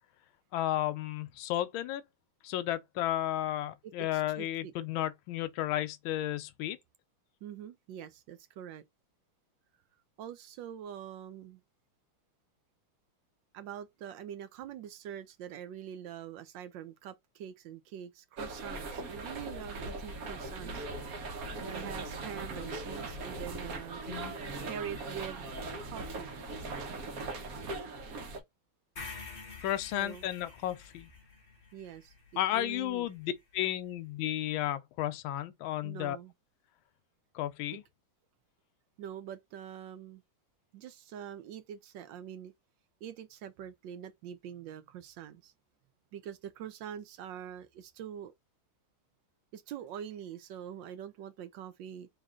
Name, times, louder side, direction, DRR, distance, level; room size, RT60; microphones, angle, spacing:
voice 1, 0.5-2.0 2.4-6.8 24.1-24.3 29.6-31.1 32.4-36.2 37.3-37.8, left 13 dB, 80° left, 1.4 m, -33 dB
voice 2, 3.8-4.7 7.4-8.8 10.2-11.6 13.5-20.8 21.6-24.3 24.6-25.5 25.8-26.3 29.9-30.2 31.7-33.2 35.8-36.3 39.0-40.2 40.7-42.5 43.0-45.5 46.1-48.3 49.5-52.1, right 9 dB, 75° right, 1.2 m, -44 dB
sound 1, 18.4-28.4, right 2 dB, 50° right, 1.3 m, -40 dB
sound 2, 29.0-33.1, left 4 dB, 35° left, 0.9 m, -48 dB
3.9 x 3.0 x 3.6 m
omnidirectional pair, 2.2 m